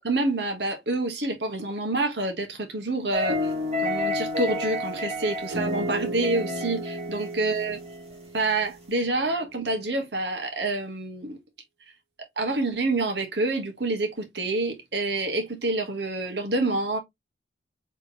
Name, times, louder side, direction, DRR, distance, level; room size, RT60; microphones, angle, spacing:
voice 1, 0.0-3.5 3.8-7.8 8.3-11.4 12.4-17.0, right 2 dB, 60° right, 1.4 m, -27 dB
sound 1, 3.1-8.1, left 1 dB, 35° right, 1.7 m, -32 dB
sound 2, 3.3-9.3, equal, 80° right, 1.1 m, -33 dB
4.5 x 3.5 x 2.9 m
head